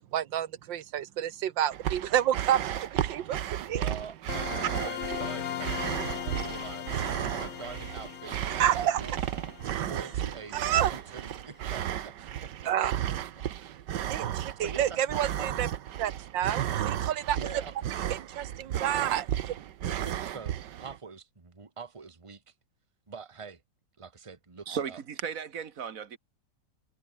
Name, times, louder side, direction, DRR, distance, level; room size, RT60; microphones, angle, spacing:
voice 1, 0.1-3.8 8.6-9.0 10.5-10.9 12.7-12.9 14.1-15.7 16.0-17.4 18.3-19.6, right 11 dB, 90° right, 1.8 m, -29 dB
sound 1, 1.7-21.0, right 11 dB, 70° right, 1.6 m, -34 dB
voice 2, 3.6-9.1 9.6-12.9 13.4-13.5 13.7-13.8 14.4-15.6 17.3-17.7 19.8-22.5 23.1-23.6 24.0-25.0, right 5 dB, 20° right, 1.5 m, -45 dB
sound 2, 4.3-11.0, left 11 dB, 65° left, 0.7 m, -39 dB
voice 3, 24.7-26.2, right 7 dB, 50° right, 1.7 m, -36 dB
omnidirectional pair, 2.0 m